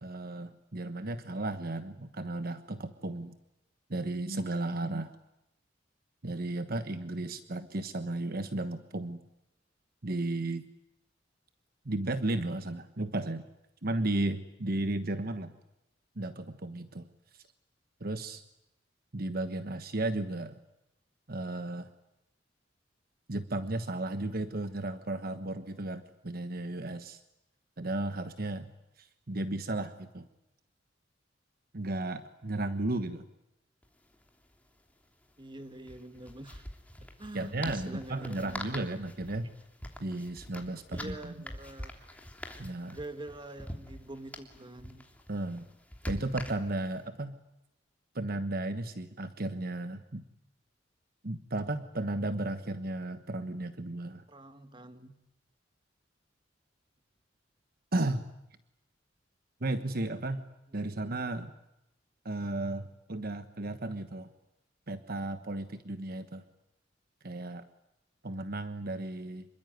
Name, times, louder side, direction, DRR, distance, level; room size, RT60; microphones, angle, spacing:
voice 1, 0.0-3.3 3.9-5.1 6.2-9.2 10.0-10.6 11.8-13.4 13.8-15.5 16.2-17.1 18.0-18.4 19.1-20.5 21.3-21.9 23.3-27.2 27.8-28.7 29.0-30.3 31.7-33.2 37.3-39.5 40.0-41.3 42.6-43.0 45.3-45.7 46.1-47.4 48.1-50.2 51.2-54.2 57.9-58.3 59.6-60.4 60.7-61.5 62.2-64.3 64.9-66.4 67.2-67.6 68.2-69.5, right 2 dB, 55° right, 10 dB, 1.2 m, -34 dB
sound 1, 33.8-33.9 34.1-34.3 35.8-47.0, left 1 dB, 10° left, 3.2 m, -44 dB
voice 2, 35.4-36.6 37.2-38.8 40.9-42.1 42.9-45.0 54.3-55.1 60.8-61.0, right 1 dB, 25° right, 9 dB, 2.0 m, -45 dB
27.0 x 23.0 x 9.4 m, 0.88 s
head